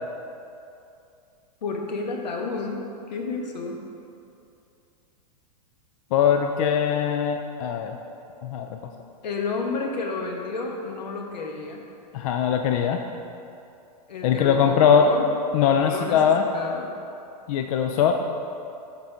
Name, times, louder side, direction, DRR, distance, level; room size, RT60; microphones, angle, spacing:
voice 1, 1.6-3.8 9.2-11.8 14.1-15.3 15.6-16.9, left 3 dB, 90° left, 1 dB, 1.1 m, -31 dB
voice 2, 6.1-8.0 8.4-8.8 12.1-13.1 14.2-15.1 15.5-16.5 17.5-18.2, left 7 dB, 55° left, 5 dB, 0.5 m, -21 dB
8.0 x 4.0 x 4.9 m, 2.6 s
hypercardioid pair, 125°, 21 cm